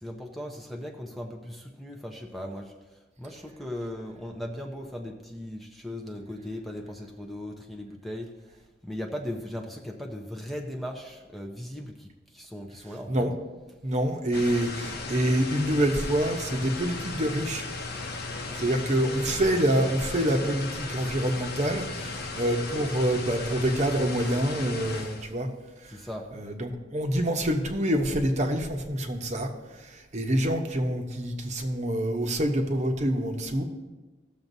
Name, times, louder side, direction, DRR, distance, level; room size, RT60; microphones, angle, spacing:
voice 1, 0.0-2.7 3.2-13.3 14.9-15.0 18.4-18.6 25.9-26.3, left 1 dB, ahead, 1 dB, 0.6 m, -38 dB
voice 2, 13.8-17.6 18.6-25.5 25.8-25.9 26.3-29.5 29.8-33.6, right 1 dB, 40° right, 4 dB, 0.9 m, -26 dB
sound 1, 14.3-25.3, left 3 dB, 60° left, 1.0 m, -36 dB
16.0 x 7.0 x 2.7 m, 1.2 s
head